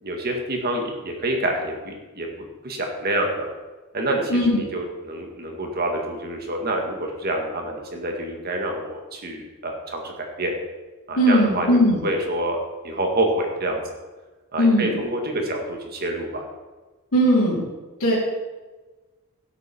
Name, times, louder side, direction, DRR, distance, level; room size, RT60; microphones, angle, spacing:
voice 1, 0.0-3.5 3.9-10.5 11.1-11.7 12.0-12.6 12.8-13.8 14.5-16.5, right 1 dB, 45° right, 2 dB, 1.8 m, -27 dB
voice 2, 11.2-12.0 14.6-14.9 17.1-17.6 18.0-18.1, equal, 75° left, -10 dB, 3.5 m, -18 dB
17.0 x 8.2 x 4.4 m, 1.2 s
head